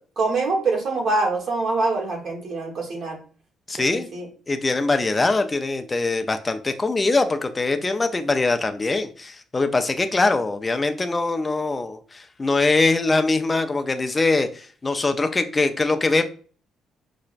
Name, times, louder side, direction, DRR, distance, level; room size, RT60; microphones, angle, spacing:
voice 1, 0.2-3.2 3.8-4.3, right 3 dB, 50° right, 0 dB, 1.2 m, -24 dB
voice 2, 3.7-4.1 4.5-16.2, left 3 dB, 20° left, 7 dB, 0.4 m, -22 dB
5.4 x 2.0 x 2.4 m, 0.42 s
cardioid pair, 100°, 0 cm